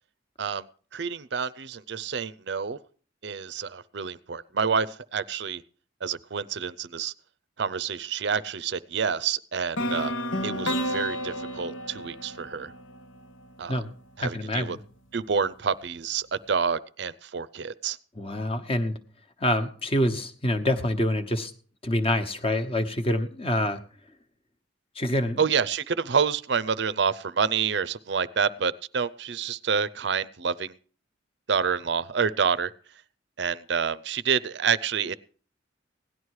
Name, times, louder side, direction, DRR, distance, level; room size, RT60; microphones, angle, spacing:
voice 1, 0.9-2.8 3.2-5.6 6.0-7.1 7.6-10.1 10.4-12.7 13.6-13.8 14.2-14.8 15.1-18.0 25.4-30.7 31.5-32.7 33.4-35.1, right 6 dB, 60° right, 17 dB, 0.5 m, -28 dB
sound 1, 9.8-13.7, equal, 90° left, 1.5 m, -31 dB
voice 2, 14.2-14.8 18.2-19.0 19.4-21.5 21.8-23.8 24.9-25.4, left 1 dB, 30° left, 9 dB, 1.1 m, -26 dB
17.0 x 11.0 x 4.8 m, 0.42 s
head